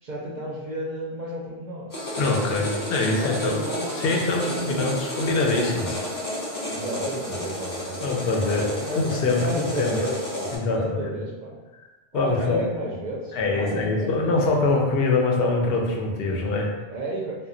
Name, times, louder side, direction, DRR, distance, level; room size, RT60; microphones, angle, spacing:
voice 1, 0.0-1.9 3.2-3.9 4.4-5.0 6.7-9.0 9.3-11.6 12.1-14.4 16.4-17.5, right 1 dB, 55° right, -5 dB, 0.6 m, -32 dB
sound 1, 1.9-10.6, left 1 dB, 25° left, 0.5 m, -31 dB
voice 2, 2.2-3.6 4.0-6.0 8.0-8.7 9.0-10.0 10.5-11.1 12.1-12.6 13.3-16.7, left 3 dB, 65° left, 0 dB, 0.7 m, -24 dB
2.2 x 2.2 x 3.6 m, 1.1 s
omnidirectional pair, 1.1 m